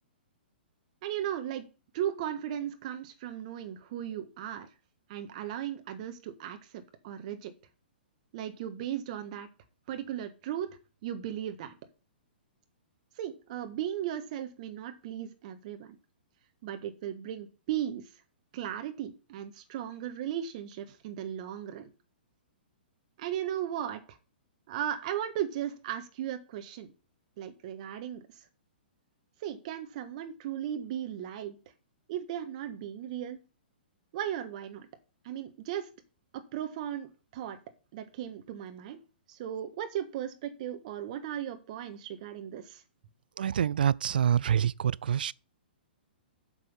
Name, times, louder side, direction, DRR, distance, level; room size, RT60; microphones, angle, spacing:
voice 1, 1.0-1.7 1.9-4.7 5.1-7.5 8.3-9.5 9.9-11.8 13.2-16.0 16.6-18.1 18.5-21.9 23.2-24.2 24.7-26.9 27.4-28.5 29.4-31.6 32.1-33.4 34.1-34.9 35.2-35.9 36.3-37.6 37.9-39.0 39.3-42.8, right 10 dB, 45° right, 1.4 m, -36 dB
voice 2, 43.4-45.3, right 9 dB, 60° right, 0.4 m, -26 dB
7.9 x 7.0 x 5.6 m
figure-of-eight pair, 115°, 6 cm